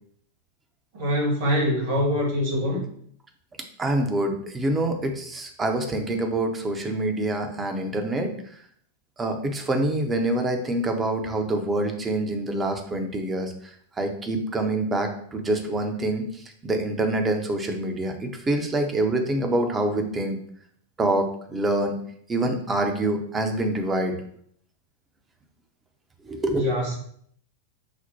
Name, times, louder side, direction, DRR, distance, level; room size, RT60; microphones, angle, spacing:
voice 1, 0.9-2.8 26.5-26.9, equal, 50° right, -1 dB, 1.3 m, -24 dB
voice 2, 3.8-8.3 9.2-13.5 14.0-20.4 21.0-22.0 22.3-24.1 26.2-26.8, right 1 dB, 15° right, 4 dB, 0.6 m, -26 dB
5.9 x 2.1 x 2.8 m, 0.63 s
figure-of-eight pair, 90°, 0 cm